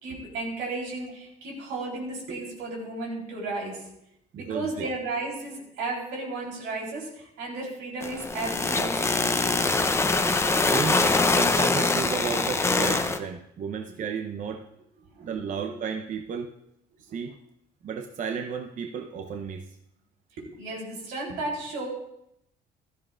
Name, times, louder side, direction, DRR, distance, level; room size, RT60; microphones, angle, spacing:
voice 1, 0.0-3.8 4.4-10.0 11.6-11.7 15.2-15.7 17.1-17.2 20.4-21.9, right 2 dB, 90° right, -1 dB, 3.7 m, -34 dB
voice 2, 4.3-4.9 10.7-11.0 11.4-14.6 15.2-16.5 17.0-17.4 17.8-19.7, right 6 dB, 50° right, 4 dB, 0.8 m, -33 dB
sound 1, 8.0-13.2, left 3 dB, 15° left, 0.7 m, -23 dB
15.5 x 13.0 x 2.5 m, 0.79 s
cardioid pair, 110°, 17 cm